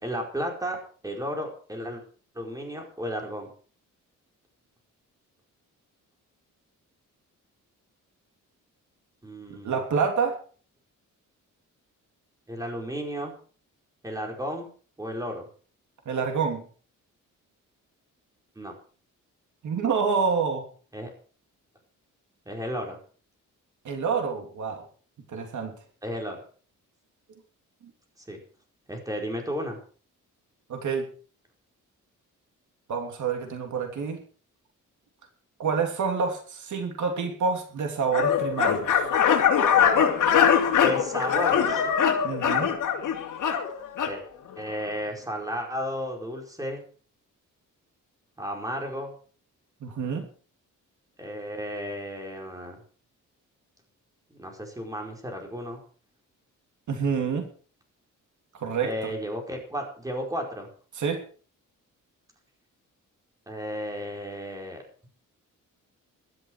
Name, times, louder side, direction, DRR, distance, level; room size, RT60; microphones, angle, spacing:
voice 1, 0.0-0.8 1.0-2.0 2.3-3.5 9.2-9.8 12.5-13.4 14.0-14.7 15.0-15.5 18.6-18.7 20.9-21.1 22.4-23.0 26.0-26.4 28.3-28.4 28.9-29.8 40.8-41.8 44.0-44.2 44.6-46.8 48.4-49.1 51.2-52.8 54.4-55.8 58.8-60.7 63.5-64.8, equal, 10° right, 2 dB, 4.7 m, -33 dB
voice 2, 9.6-10.4 16.1-16.6 19.6-20.7 23.8-24.8 25.3-25.7 30.7-31.1 32.9-34.2 35.6-39.0 42.2-42.7 49.8-50.3 56.9-57.4 58.6-58.9 60.9-61.2, right 5 dB, 65° right, 4 dB, 3.0 m, -27 dB
sound 1, 38.1-44.2, left 8 dB, 70° left, 3.2 m, -22 dB
16.0 x 12.5 x 4.7 m, 0.42 s
cardioid pair, 135°, 32 cm